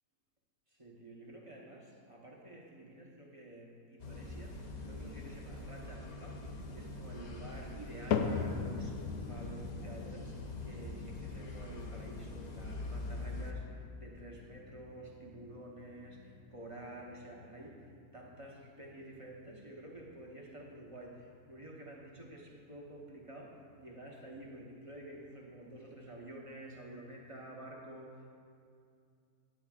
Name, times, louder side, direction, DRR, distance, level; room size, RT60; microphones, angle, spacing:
voice 1, 0.7-4.6 4.8-10.4 10.6-28.4, right 1 dB, 25° right, -3 dB, 0.9 m, -50 dB
sound 1, 4.0-13.5, left 2 dB, 50° left, 0.5 m, -44 dB
sound 2, 8.1-24.4 24.8-25.3 25.9-26.0 26.8-26.9, left 6 dB, 70° left, 0.8 m, -43 dB
11.5 x 10.0 x 2.4 m, 2.4 s
omnidirectional pair, 1.7 m